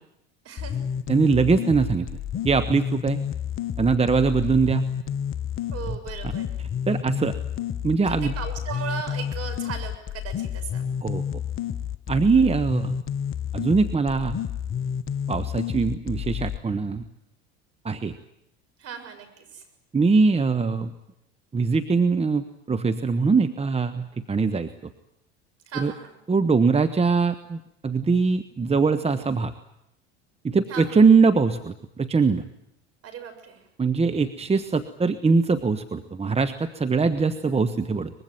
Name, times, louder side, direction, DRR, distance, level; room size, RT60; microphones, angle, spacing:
voice 1, 0.4-0.9 5.7-6.6 8.0-10.9 18.8-19.6 25.7-26.2 30.7-31.0 33.0-33.7, right 6 dB, 50° right, 6 dB, 6.9 m, -37 dB
sound 1, 0.6-16.6, left 8 dB, 40° left, 1.2 m, -30 dB
voice 2, 1.1-2.1 2.4-3.2 3.8-4.8 6.9-7.3 7.8-8.3 11.0-11.2 12.1-13.0 13.5-14.4 15.3-17.0 17.8-18.1 19.9-20.9 21.5-24.7 25.8-25.9 26.3-29.5 30.4-32.4 33.8-38.1, right 4 dB, 20° right, 9 dB, 1.3 m, -22 dB
24.0 x 21.5 x 9.1 m, 0.80 s
hypercardioid pair, 75°, 32 cm